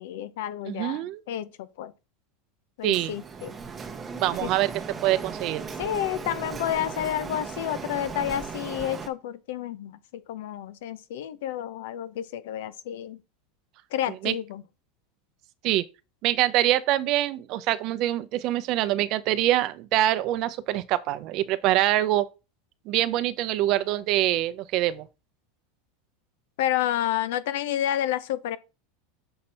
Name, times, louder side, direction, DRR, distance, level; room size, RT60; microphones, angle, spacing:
voice 1, 0.0-1.9 2.8-3.5 4.4-4.5 5.8-13.2 13.9-14.6 26.6-28.6, left 11 dB, 75° left, 0.7 m, -30 dB
voice 2, 0.6-1.2 2.8-3.1 4.2-4.7 5.0-5.6 14.1-14.3 15.6-15.8 16.2-22.3 22.9-25.1, right 14 dB, 45° right, 0.5 m, -24 dB
Printer, 2.9-9.1, right 5 dB, 15° right, 0.9 m, -37 dB
6.5 x 4.3 x 4.2 m
supercardioid pair, 155°, 0 cm